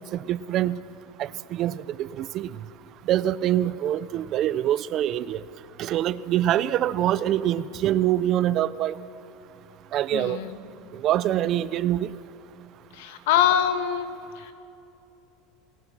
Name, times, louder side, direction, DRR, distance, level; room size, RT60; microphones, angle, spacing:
voice 1, 0.1-0.8 1.2-2.5 3.1-5.4 5.8-8.9 9.9-10.4 10.9-12.1, right 12 dB, 35° right, 18 dB, 0.4 m, -25 dB
voice 2, 10.1-10.6 12.9-14.1 14.3-14.5, left 9 dB, 70° left, 9 dB, 1.6 m, -24 dB
27.5 x 19.5 x 6.1 m, 2.9 s
supercardioid pair, 160°, 0 cm